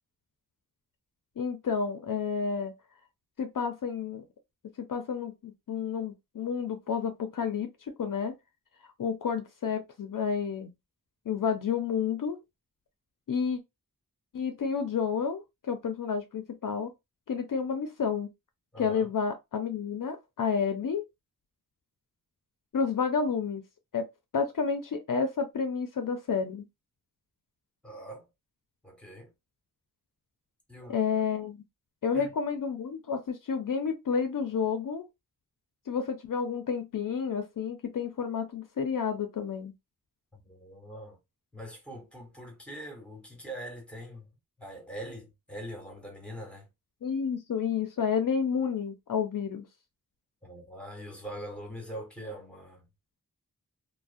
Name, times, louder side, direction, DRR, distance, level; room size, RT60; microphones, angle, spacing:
voice 1, 1.4-2.7 3.4-4.3 4.8-8.4 9.0-10.7 11.3-12.4 13.3-13.6 14.3-16.9 17.3-18.3 18.8-21.0 22.7-23.6 23.9-24.1 24.3-26.6 30.9-31.6 32.0-35.1 35.9-39.7 47.0-49.7, left 6 dB, 65° left, 0.5 m, -30 dB
voice 2, 18.7-19.1 27.8-28.3 28.8-29.3 30.7-31.0 32.1-32.3 40.3-41.2 41.5-46.7 50.4-52.9, right 1 dB, 5° left, 1.1 m, -43 dB
2.4 x 2.0 x 2.5 m
wide cardioid pair, 60°, 36 cm